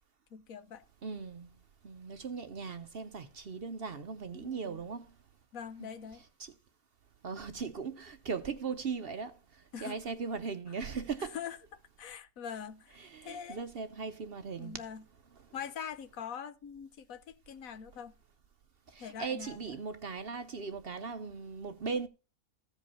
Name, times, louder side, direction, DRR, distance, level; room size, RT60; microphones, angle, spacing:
voice 1, 0.3-0.8 4.3-4.8 5.5-6.2 9.7-10.0 11.3-13.6 14.6-15.0 15.5-18.1 19.0-19.8, left 7 dB, 75° left, 1.3 m, -43 dB
voice 2, 1.0-1.5 1.8-5.1 5.8-5.9 6.4-6.5 7.2-11.4 13.0-14.8 18.9-22.1, right 5 dB, 55° right, 0.8 m, -38 dB
15.0 x 5.2 x 5.5 m
omnidirectional pair, 1.5 m